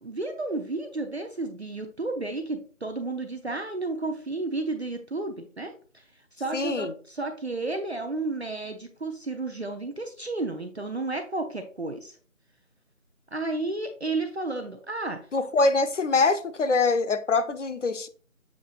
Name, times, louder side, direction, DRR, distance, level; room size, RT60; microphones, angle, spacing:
voice 1, 0.0-5.7 6.4-12.1 13.3-15.2, right 2 dB, 55° right, 0.5 m, -32 dB
voice 2, 6.5-6.9 15.3-18.1, left 3 dB, 65° left, 0.6 m, -24 dB
7.2 x 2.8 x 2.4 m
figure-of-eight pair, 180°, 40 cm